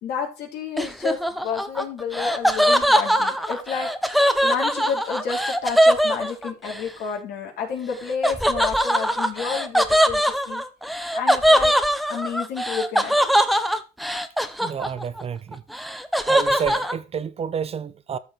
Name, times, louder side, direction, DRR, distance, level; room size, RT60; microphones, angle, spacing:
voice 1, 0.0-10.6 11.0-11.7 12.1-13.2, left 6 dB, 75° left, 3.8 m, -30 dB
Laughter, 0.8-6.8 8.2-15.2 15.5-16.9, equal, ahead, 0.8 m, -21 dB
voice 2, 14.6-15.6 16.3-18.2, right 7 dB, 35° right, 0.7 m, -29 dB
13.5 x 4.9 x 4.4 m
cardioid pair, 110°, 17 cm